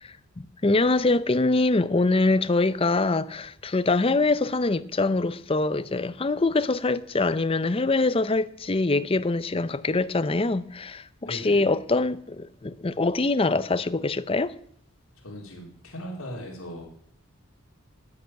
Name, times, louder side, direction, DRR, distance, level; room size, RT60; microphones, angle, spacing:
voice 1, 0.0-14.5, left 3 dB, 25° left, 0.6 m, -24 dB
voice 2, 11.3-11.6 15.2-16.8, equal, 85° left, 3.5 m, -38 dB
11.0 x 9.5 x 9.0 m
head